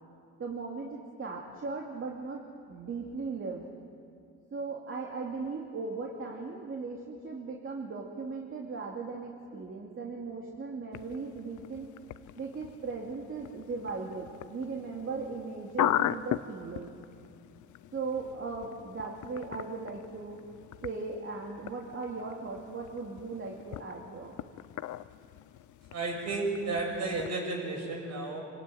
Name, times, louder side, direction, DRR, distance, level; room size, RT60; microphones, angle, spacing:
voice 1, 0.4-3.7 4.5-11.9 12.4-16.9 17.9-20.4 20.8-24.4, right 4 dB, 45° right, -2 dB, 2.6 m, -38 dB
sound 1, 10.9-27.3, left 13 dB, 75° left, 0.7 m, -39 dB
voice 2, 25.9-28.4, right 3 dB, 60° right, 0 dB, 7.5 m, -32 dB
25.5 x 17.0 x 9.2 m, 2.4 s
cardioid pair, 90°, 30 cm